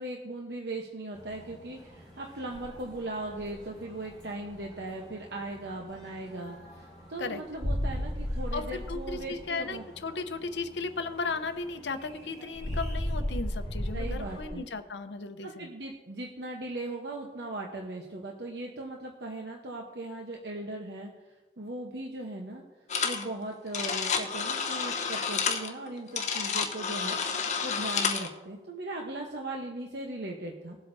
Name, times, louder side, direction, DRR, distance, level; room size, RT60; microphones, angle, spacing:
voice 1, 0.0-9.8 13.9-14.6 15.4-21.1 21.6-22.6 23.0-30.8, right 2 dB, 70° right, 0 dB, 1.0 m, -38 dB
sound 1, 1.1-14.5, equal, 25° right, 3.3 m, -38 dB
voice 2, 8.5-15.7, left 4 dB, 80° left, 9 dB, 0.8 m, -35 dB
sound 2, 22.9-23.3 23.5-28.3, left 6 dB, 40° left, 0.9 m, -30 dB
20.0 x 8.0 x 2.7 m, 1.2 s
head